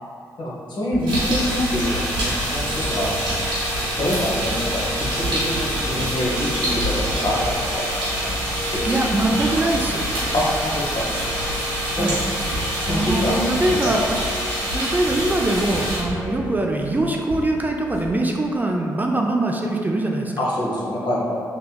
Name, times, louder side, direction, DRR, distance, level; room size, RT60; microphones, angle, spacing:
voice 1, 0.4-1.8 2.1-3.1 3.7-7.9 8.4-8.8 10.3-11.1 11.9-12.1 12.8-13.4 13.8-14.0 20.4-21.4, left 1 dB, 60° left, -5 dB, 0.9 m, -25 dB
Writing, 0.9-18.3, equal, 65° right, 0.7 m, -35 dB
sound 1, 1.1-16.0, equal, 85° right, 1.1 m, -26 dB
sound 2, 2.6-16.7, left 2 dB, 40° left, 1.4 m, -38 dB
voice 2, 8.8-10.0 12.0-12.2 12.9-14.0 14.7-20.4, right 2 dB, 20° right, 1 dB, 0.3 m, -22 dB
3.4 x 2.8 x 2.2 m, 2.5 s
hypercardioid pair, 45°, 9 cm